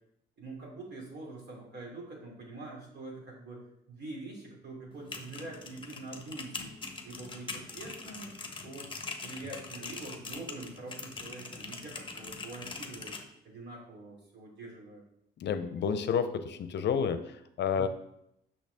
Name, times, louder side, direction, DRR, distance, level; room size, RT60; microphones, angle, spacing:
voice 1, 0.4-6.7 7.0-8.4 8.6-8.9 9.2-13.2 13.4-15.0 17.7-17.9, right 2 dB, 60° right, -2 dB, 2.8 m, -45 dB
sound 1, 4.9-13.2, left 4 dB, 25° left, 1.0 m, -43 dB
voice 2, 15.4-17.2 17.6-17.9, left 7 dB, 60° left, 10 dB, 0.6 m, -29 dB
6.3 x 6.2 x 3.5 m, 0.77 s
cardioid pair, 90°, 20 cm